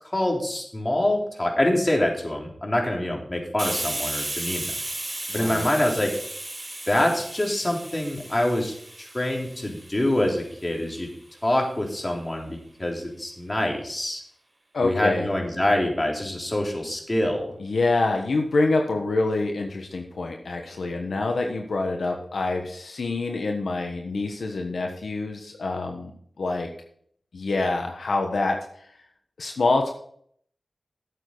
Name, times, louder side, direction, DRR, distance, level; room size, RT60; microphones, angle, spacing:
voice 1, 0.1-4.7 5.3-6.2 6.9-11.1 11.4-14.2 14.8-17.5, left 1 dB, 30° left, 0 dB, 3.5 m, -25 dB
Hiss, 3.6-11.0, right 1 dB, 45° right, 3.9 m, -35 dB
voice 2, 5.3-5.7 14.7-15.3 17.6-26.1 26.4-26.7 27.3-28.6 29.4-29.9, left 3 dB, 90° left, 3 dB, 1.2 m, -26 dB
12.5 x 8.1 x 4.0 m, 0.63 s
cardioid pair, 45°, 0 cm